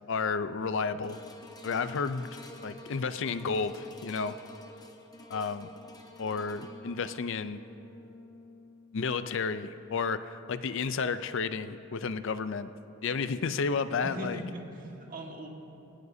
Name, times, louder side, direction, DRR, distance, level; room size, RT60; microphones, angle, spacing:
voice 1, 0.1-1.2 1.6-2.3 2.6-4.3 5.3-5.7 6.2-7.6 8.9-12.7 13.0-14.4, left 5 dB, 65° left, 12 dB, 0.5 m, -31 dB
sound 1, 1.0-11.4 12.0-12.1, left 1 dB, 20° left, 1.0 m, -51 dB
voice 2, 14.0-15.5, equal, 40° right, 0 dB, 1.8 m, -40 dB
21.5 x 17.5 x 2.7 m, 2.9 s
head